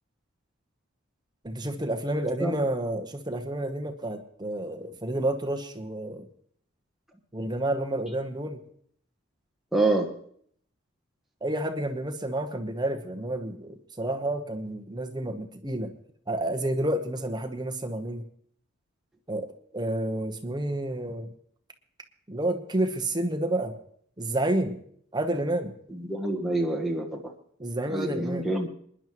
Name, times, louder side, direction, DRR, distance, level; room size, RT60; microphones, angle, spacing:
voice 1, 1.4-6.3 7.3-8.6 11.4-15.9 16.3-18.2 19.3-21.3 22.3-23.7 24.2-24.8 25.1-25.7 27.6-28.4, right 1 dB, 20° right, 5 dB, 1.0 m, -30 dB
voice 2, 9.7-10.1 25.9-27.2 27.9-28.7, right 2 dB, ahead, -1 dB, 1.4 m, -27 dB
27.5 x 10.5 x 3.1 m, 0.63 s
head